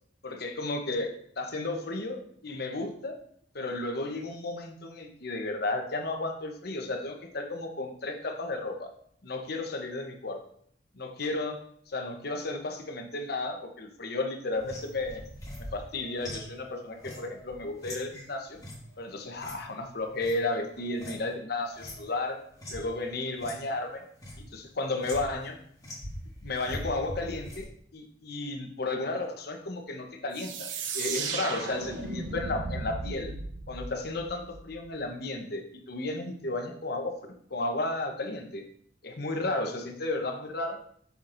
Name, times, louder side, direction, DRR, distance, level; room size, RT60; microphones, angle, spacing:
voice 1, 0.2-3.1 3.5-8.9 9.2-10.4 10.9-11.6 11.9-15.2 15.7-18.6 19.0-21.7 22.0-22.3 22.7-24.0 24.4-25.6 26.4-27.7 27.9-30.7 30.9-33.3 33.7-37.1 37.5-38.6 39.0-40.8, left 2 dB, 60° left, 4 dB, 0.9 m, -33 dB
sound 1, 14.5-21.3 21.6-22.9 23.3-23.6 23.9-24.4 25.0-25.5 25.8-27.6, equal, 20° left, 2.3 m, -43 dB
sound 2, 30.3-34.9, right 4 dB, 85° right, 0.7 m, -36 dB
6.9 x 5.9 x 2.6 m, 0.64 s
head